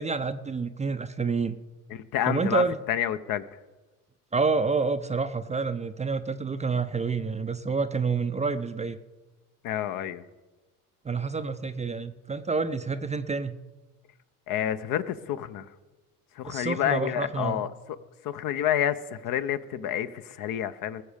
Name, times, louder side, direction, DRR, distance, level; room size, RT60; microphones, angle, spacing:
voice 1, 0.0-1.6 2.3-2.8 4.3-9.0 11.0-13.6 16.4-17.6, right 4 dB, 15° right, 10 dB, 0.6 m, -28 dB
voice 2, 1.9-3.4 9.6-10.2 14.5-15.7 16.3-18.0 18.2-21.0, left 10 dB, 50° left, 12 dB, 0.9 m, -29 dB
19.5 x 7.1 x 5.1 m, 1.2 s
hypercardioid pair, 70°, 44 cm